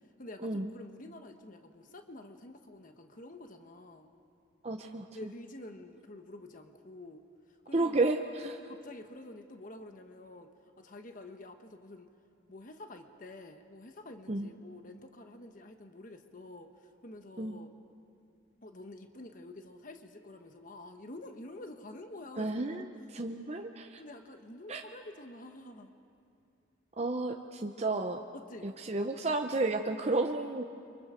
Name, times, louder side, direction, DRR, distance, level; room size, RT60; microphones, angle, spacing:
voice 1, 0.2-4.1 5.1-7.2 7.5-8.0 8.7-10.5 10.8-12.1 12.5-17.7 18.6-22.8 24.0-25.9 28.3-28.7, left 1 dB, 45° left, 6 dB, 1.2 m, -48 dB
voice 2, 4.6-5.1 7.7-8.6 14.3-14.5 17.4-17.6 22.4-22.8 23.1-24.0 24.7-24.8 27.0-28.2 28.6-30.6, right 2 dB, 35° right, 4 dB, 0.7 m, -32 dB
30.0 x 24.5 x 5.1 m, 2.5 s
head